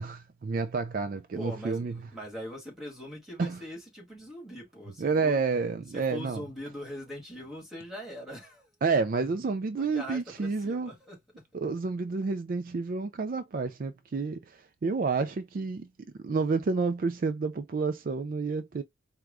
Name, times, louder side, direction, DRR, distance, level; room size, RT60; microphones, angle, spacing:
voice 1, 0.0-2.0 3.4-3.6 5.0-6.4 8.8-10.9 11.5-15.9 16.2-18.8, right 4 dB, 45° right, 0.4 m, -29 dB
voice 2, 1.3-5.4 5.9-8.7 9.8-11.4, equal, ahead, 1.8 m, -42 dB
4.6 x 2.3 x 3.6 m
head